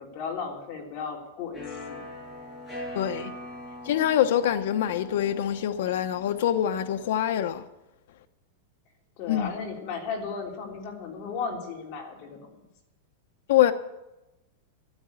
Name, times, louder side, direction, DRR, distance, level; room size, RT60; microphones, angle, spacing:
voice 1, 0.0-2.0 9.2-12.7, left 5 dB, 40° left, 3.5 m, -35 dB
sound 1, 1.5-7.1, left 1 dB, 10° left, 6.5 m, -42 dB
voice 2, 2.9-3.3 3.8-7.6 9.3-9.6 13.5-13.7, left 11 dB, 65° left, 0.9 m, -24 dB
13.5 x 10.5 x 8.0 m
supercardioid pair, 160°, 0 cm